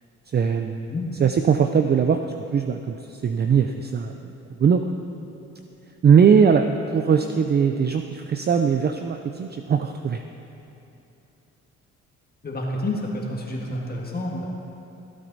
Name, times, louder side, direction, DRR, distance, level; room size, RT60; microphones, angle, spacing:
voice 1, 0.3-0.9 1.2-4.3 4.6-4.9 6.0-10.2, right 6 dB, 35° right, 6 dB, 0.5 m, -20 dB
voice 2, 12.4-14.5, left 1 dB, 30° left, -2 dB, 1.7 m, -29 dB
16.0 x 8.7 x 4.0 m, 2.9 s
cardioid pair, 90°, 30 cm